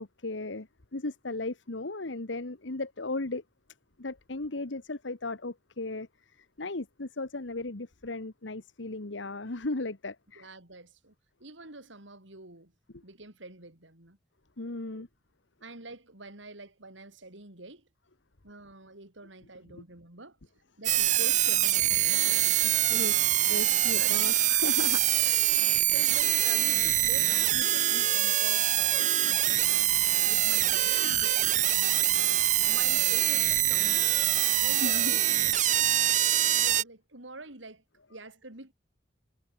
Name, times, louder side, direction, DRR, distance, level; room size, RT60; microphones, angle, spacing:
voice 1, 0.0-3.4 4.0-10.5 12.9-13.0 14.6-15.1 22.9-23.1 23.5-25.5 34.8-35.2, left 2 dB, 80° left, 1.4 m, -36 dB
voice 2, 10.4-11.1 11.4-12.7 13.0-14.2 14.9-15.0 15.6-17.9 18.4-20.4 20.8-23.1 24.0-24.4 25.7-29.6 30.2-31.9 32.7-34.0 34.6-35.2 35.5-37.8 38.1-38.7, right 2 dB, 85° right, 4.3 m, -46 dB
sound 1, 20.8-36.8, right 12 dB, 40° right, 1.4 m, -24 dB
head